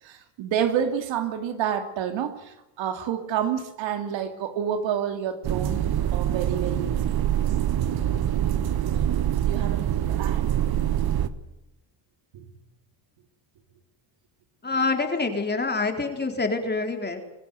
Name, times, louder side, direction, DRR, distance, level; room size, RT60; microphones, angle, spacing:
voice 1, 0.0-5.8 6.1-7.2 9.4-10.5 12.3-12.5, right 8 dB, 75° right, 2.8 m, -29 dB
sound 1, 5.4-11.3, right 11 dB, 50° right, 1.5 m, -25 dB
voice 2, 14.6-17.2, left 3 dB, 20° left, 4.1 m, -26 dB
25.0 x 15.5 x 9.4 m
cardioid pair, 105°, 46 cm